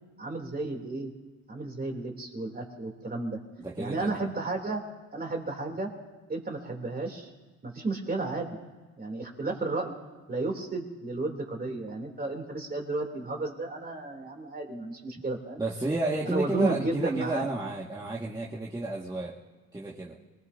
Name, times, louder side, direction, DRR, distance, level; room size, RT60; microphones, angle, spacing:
voice 1, 0.2-1.1 1.5-3.4 3.8-4.8 5.1-5.9 6.3-7.3 7.6-8.5 9.0-9.9 10.3-15.6 16.2-17.4, right 2 dB, 25° right, 2 dB, 3.2 m, -32 dB
voice 2, 3.6-4.2 15.6-19.4 19.7-20.2, right 2 dB, 10° right, -6 dB, 1.9 m, -31 dB
26.0 x 20.0 x 2.8 m, 1.2 s
cardioid pair, 95°, 33 cm